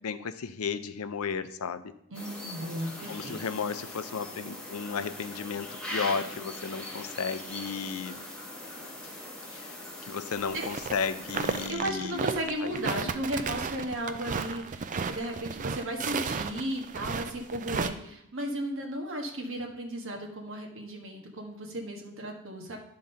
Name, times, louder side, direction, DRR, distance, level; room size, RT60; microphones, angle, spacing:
voice 1, 0.0-1.9 3.1-8.3 9.5-9.8 10.1-12.3 12.6-13.1, left 5 dB, 75° left, 12 dB, 0.5 m, -34 dB
sound 1, 2.1-11.7, left 1 dB, 5° left, 1.5 m, -41 dB
voice 2, 2.1-3.4 10.5-10.6 11.7-22.8, right 1 dB, 60° right, 1 dB, 1.5 m, -35 dB
sound 2, 10.5-10.9 11.2-17.9, right 5 dB, 35° right, 0.4 m, -33 dB
10.5 x 3.8 x 5.6 m, 0.75 s
head